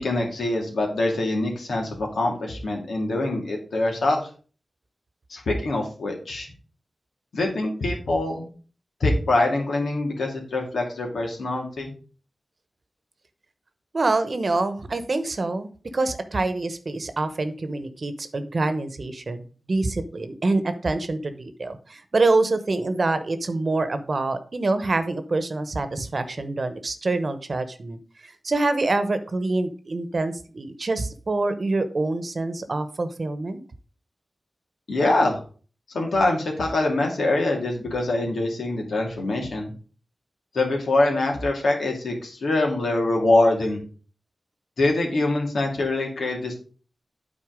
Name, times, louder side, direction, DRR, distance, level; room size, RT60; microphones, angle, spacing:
voice 1, 0.0-4.3 5.3-6.5 7.3-8.5 9.0-11.9 34.9-35.4 35.9-39.7 40.5-43.8 44.8-46.5, left 2 dB, 90° left, 1 dB, 2.4 m, -24 dB
voice 2, 13.9-19.4 19.7-33.6, right 2 dB, 55° right, 10 dB, 1.0 m, -26 dB
8.8 x 4.3 x 5.1 m, 0.40 s
wide cardioid pair, 75°, 0 cm